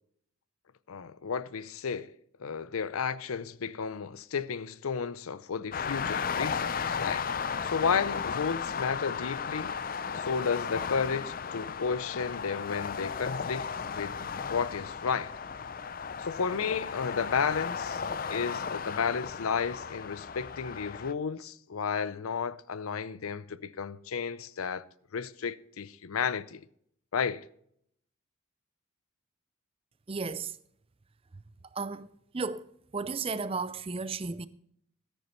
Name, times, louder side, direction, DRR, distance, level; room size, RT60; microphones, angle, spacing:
voice 1, 0.9-2.1 2.4-7.3 7.6-9.7 10.1-14.1 14.5-15.3 16.2-18.0 18.3-24.8 25.1-26.6 27.1-27.5, left 6 dB, 90° left, 0.6 m, -32 dB
sound 1, 5.7-21.1, left 6 dB, 40° left, 0.5 m, -35 dB
voice 2, 30.1-30.5 31.7-32.1 32.3-32.6 32.9-34.5, right 4 dB, 25° right, 0.5 m, -33 dB
13.5 x 10.0 x 4.4 m
head